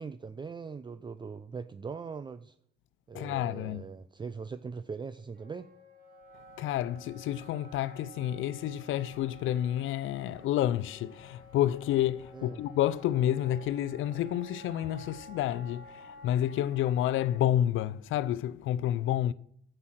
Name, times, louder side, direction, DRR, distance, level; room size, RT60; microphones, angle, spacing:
voice 1, 0.0-2.6 3.1-5.7 12.3-12.6, right 5 dB, 25° right, 0.5 m, -41 dB
voice 2, 3.1-3.8 6.6-19.3, left 12 dB, 80° left, 0.5 m, -29 dB
Wind instrument woodwind instrument, 5.3-17.4, equal, 50° right, 4.6 m, -52 dB
9.8 x 8.0 x 5.9 m
cardioid pair, 90°, 20 cm